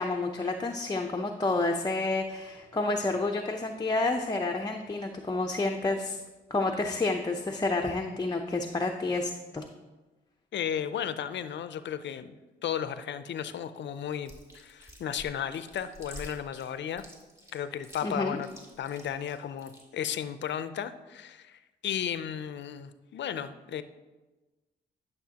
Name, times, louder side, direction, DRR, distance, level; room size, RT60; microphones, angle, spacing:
voice 1, 0.0-6.2 6.5-9.6 18.0-18.4, left 2 dB, 20° left, 2 dB, 0.7 m, -29 dB
voice 2, 10.5-12.3 12.6-17.0 17.5-18.5 18.8-23.8, left 9 dB, 65° left, 12 dB, 0.6 m, -34 dB
Chewing mastication, 14.3-19.8, equal, 15° right, 2.8 m, -48 dB
11.5 x 6.6 x 2.9 m, 1.2 s
cardioid pair, 70°, 20 cm